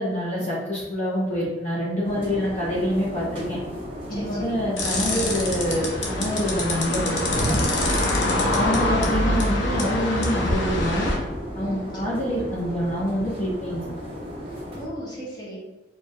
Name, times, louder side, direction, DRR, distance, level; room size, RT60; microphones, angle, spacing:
voice 1, 0.0-3.6 4.1-7.6 8.3-11.1 11.5-13.8, equal, 40° left, -8 dB, 0.8 m, -26 dB
sound 1, 2.0-14.9, equal, 30° right, 0.9 m, -36 dB
voice 2, 4.1-4.5 5.1-5.2 11.6-11.9 14.5-15.6, equal, 25° left, -6 dB, 1.2 m, -39 dB
sound 2, 4.8-11.2, left 1 dB, 85° left, 0.7 m, -24 dB
4.5 x 3.0 x 2.2 m, 1.1 s
head